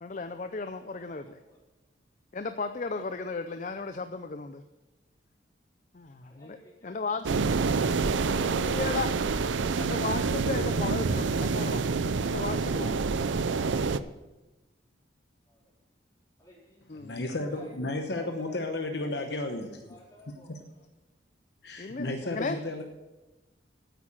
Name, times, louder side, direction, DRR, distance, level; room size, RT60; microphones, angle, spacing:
voice 1, 0.0-1.4 2.3-4.6 5.9-6.6 6.8-7.4 8.4-9.1 9.8-11.9 12.2-13.0 16.9-17.2 21.8-22.6, left 4 dB, 40° left, 9 dB, 0.5 m, -35 dB
voice 2, 0.7-1.6 6.2-8.5 15.5-15.7 16.4-17.7 18.0-18.5 18.7-19.4 19.7-20.6, left 1 dB, 20° left, -5 dB, 4.0 m, -56 dB
sound 1, 7.2-14.0, right 4 dB, 80° right, 0.5 m, -27 dB
voice 3, 17.0-19.9 21.6-22.8, left 2 dB, 60° left, 5 dB, 1.0 m, -33 dB
9.2 x 8.5 x 7.4 m, 1.1 s
head